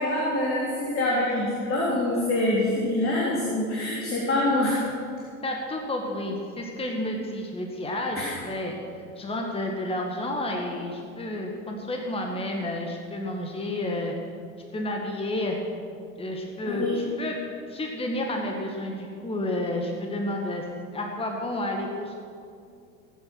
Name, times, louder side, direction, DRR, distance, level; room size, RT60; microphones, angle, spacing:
voice 1, 0.0-4.8 8.2-8.4 16.7-17.0, left 1 dB, 30° left, -5 dB, 3.6 m, -25 dB
voice 2, 5.4-8.7 9.2-14.1 14.7-15.6 16.2-17.4 17.7-20.6 20.9-22.2, left 1 dB, 15° left, 1 dB, 1.8 m, -30 dB
18.0 x 9.7 x 6.2 m, 2.4 s
figure-of-eight pair, 85°, 42 cm